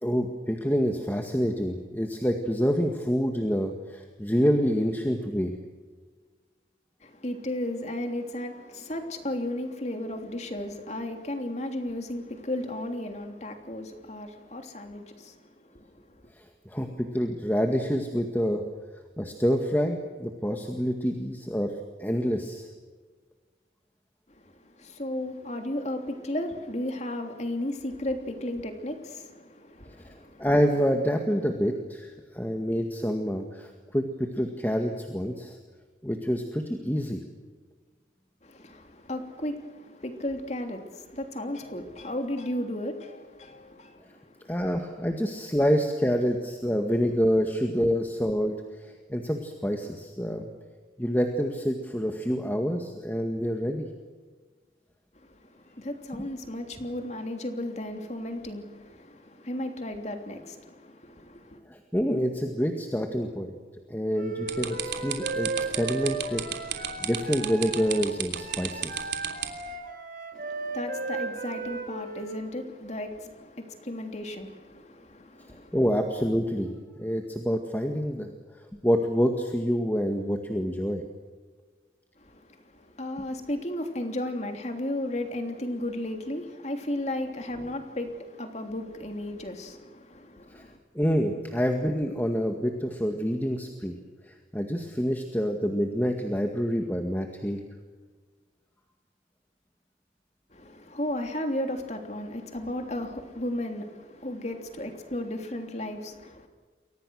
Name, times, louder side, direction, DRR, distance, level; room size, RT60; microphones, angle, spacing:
voice 1, 0.0-5.5 16.4-18.6 19.2-21.7 22.0-22.7 30.0-30.1 30.4-35.6 36.0-37.2 44.5-50.5 51.0-53.9 61.7-63.5 63.9-65.5 65.8-66.4 66.7-69.1 75.7-78.3 78.8-81.0 90.5-90.6 91.0-94.0 94.3-97.6, equal, 10° left, 1.8 m, -27 dB
voice 2, 7.0-16.2 24.3-30.5 38.4-44.5 55.1-61.6 70.3-75.8 82.2-90.8 100.5-106.5, left 1 dB, 40° left, 3.1 m, -35 dB
Wind instrument woodwind instrument, 64.1-72.5, right 3 dB, 45° right, 6.0 m, -35 dB
sound 1, 64.5-69.7, right 10 dB, 70° right, 3.2 m, -32 dB
29.5 x 23.5 x 6.4 m
head